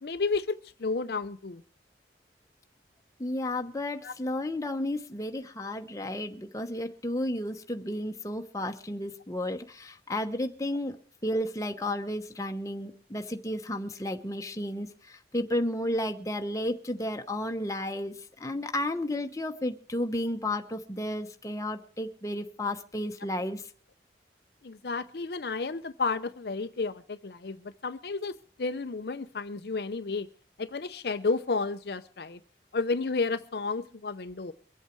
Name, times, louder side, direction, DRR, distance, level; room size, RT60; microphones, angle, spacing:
voice 1, 0.0-0.5 0.8-1.6 4.0-4.1 24.6-30.3 30.6-32.4 32.7-34.5, left 4 dB, 60° left, 0.6 m, -32 dB
voice 2, 3.2-11.0 11.2-23.7, left 1 dB, 20° left, 1.0 m, -32 dB
23.5 x 8.2 x 4.6 m
head